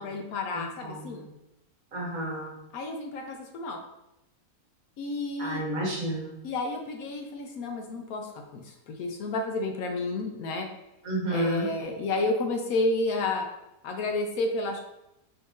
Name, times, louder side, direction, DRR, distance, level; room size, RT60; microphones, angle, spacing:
voice 1, 0.0-1.3 2.7-3.8 5.0-5.6 6.4-10.7 11.3-13.5 13.8-14.8, left 2 dB, 75° left, 3 dB, 1.1 m, -31 dB
voice 2, 0.5-1.3 1.9-2.5 5.4-6.4 11.0-11.7, right 1 dB, 70° right, -4 dB, 1.7 m, -31 dB
4.2 x 2.6 x 3.6 m, 0.87 s
omnidirectional pair, 1.5 m